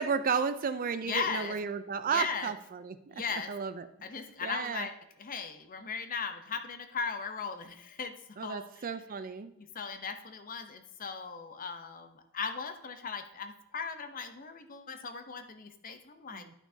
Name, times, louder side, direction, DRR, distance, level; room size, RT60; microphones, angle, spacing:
voice 1, 0.0-3.9 4.4-4.9 8.4-9.5 16.3-16.5, right 6 dB, 40° right, 11 dB, 0.4 m, -33 dB
voice 2, 1.0-1.6 2.1-2.5 3.1-3.5 4.0-8.1 8.4-8.9 9.6-16.5, left 5 dB, 40° left, 7 dB, 0.7 m, -38 dB
11.5 x 6.0 x 2.7 m, 0.81 s
head